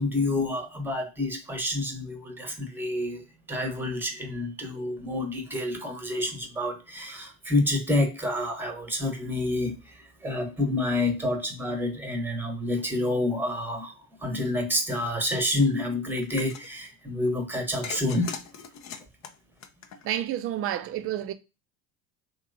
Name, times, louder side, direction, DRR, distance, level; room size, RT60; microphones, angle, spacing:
voice 1, 0.0-3.2 3.5-18.4, left 2 dB, 5° right, 0.9 m, -28 dB
sound 1, 16.2-16.7 17.8-20.3, left 7 dB, 35° left, 0.5 m, -40 dB
voice 2, 20.0-21.3, right 11 dB, 30° right, 0.4 m, -29 dB
3.0 x 2.9 x 2.5 m
hypercardioid pair, 75°, 46 cm